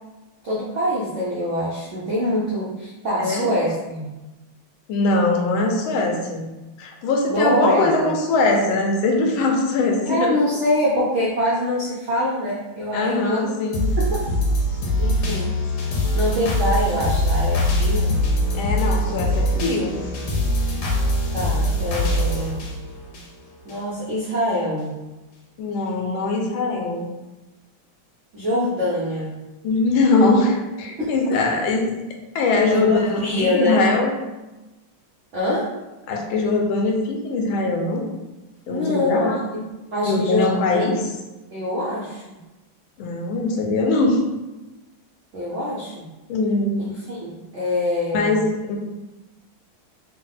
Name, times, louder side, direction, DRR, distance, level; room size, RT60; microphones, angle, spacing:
voice 1, 0.4-4.1 7.3-8.1 10.1-13.5 14.0-14.2 15.0-15.5 16.1-18.1 21.3-22.6 23.6-24.9 28.3-29.3 31.0-31.1 32.7-33.8 35.3-35.7 38.7-39.6 39.9-40.9 41.5-42.4 45.3-46.1 46.8-48.4, left 1 dB, 85° right, -6 dB, 0.6 m, -24 dB
voice 2, 3.2-3.5 4.9-6.5 6.8-10.3 12.9-13.9 18.5-20.0 25.6-27.1 29.6-32.0 32.3-34.1 36.1-38.1 38.7-39.4 40.0-41.0 43.0-44.2 46.3-46.9 48.1-48.8, left 3 dB, 80° left, 1 dB, 1.4 m, -21 dB
sound 1, 13.7-23.8 24.2-24.3, equal, 65° left, 1.1 m, -22 dB
3.4 x 2.1 x 3.8 m, 1.1 s
omnidirectional pair, 2.2 m